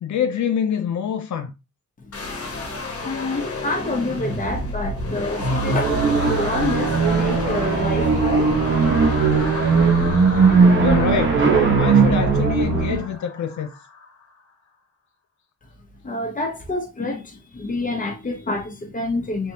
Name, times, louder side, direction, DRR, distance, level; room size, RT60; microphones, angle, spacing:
voice 1, 0.0-1.5 10.8-11.5 11.8-13.7, left 8 dB, 70° left, 0.5 m, -25 dB
voice 2, 2.0-2.3 3.0-8.5 16.0-19.5, left 2 dB, 25° left, 0.8 m, -28 dB
sound 1, 2.1-14.2, left 3 dB, 50° left, 1.1 m, -32 dB
sound 2, 5.4-13.0, right 4 dB, 40° right, 1.0 m, -18 dB
3.6 x 3.3 x 2.8 m
wide cardioid pair, 175°, 31 cm